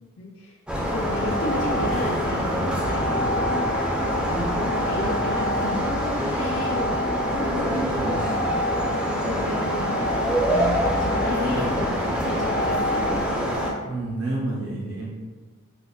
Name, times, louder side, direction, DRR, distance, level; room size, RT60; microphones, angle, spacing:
voice 1, 0.2-0.6 0.9-7.9 8.2-13.1, left 1 dB, 90° left, -5 dB, 0.5 m, -33 dB
sound 1, 0.7-13.7, equal, 5° right, 0.3 m, -24 dB
voice 2, 7.9-8.3 8.6-8.7 11.4-11.9 13.8-15.1, right 2 dB, 70° right, -4 dB, 0.5 m, -30 dB
5.1 x 2.1 x 2.3 m, 1.4 s
head